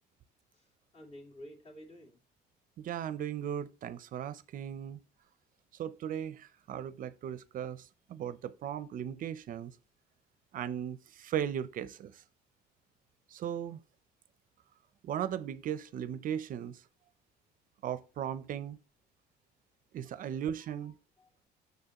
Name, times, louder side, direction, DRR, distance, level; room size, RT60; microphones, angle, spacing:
voice 1, 0.5-2.2 20.2-21.3, equal, 35° left, 2.2 m, -53 dB
voice 2, 2.9-5.0 5.8-9.7 10.5-12.2 13.3-13.8 15.0-16.8 17.8-18.8 19.9-20.9, right 9 dB, 55° right, 0.5 m, -37 dB
6.8 x 6.6 x 2.9 m
cardioid pair, 110°, 17 cm